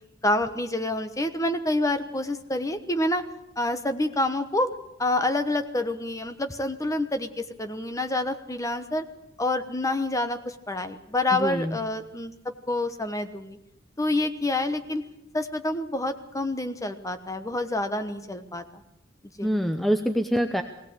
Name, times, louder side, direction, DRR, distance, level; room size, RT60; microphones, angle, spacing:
voice 1, 0.2-3.2 3.6-4.7 5.0-9.0 9.4-12.3 12.7-13.6 14.0-15.0 15.3-18.8 19.4-19.5, left 2 dB, 15° left, 8 dB, 1.2 m, -27 dB
voice 2, 11.3-11.8 19.4-20.6, equal, ahead, 6 dB, 0.8 m, -25 dB
21.0 x 17.0 x 8.1 m, 0.84 s
head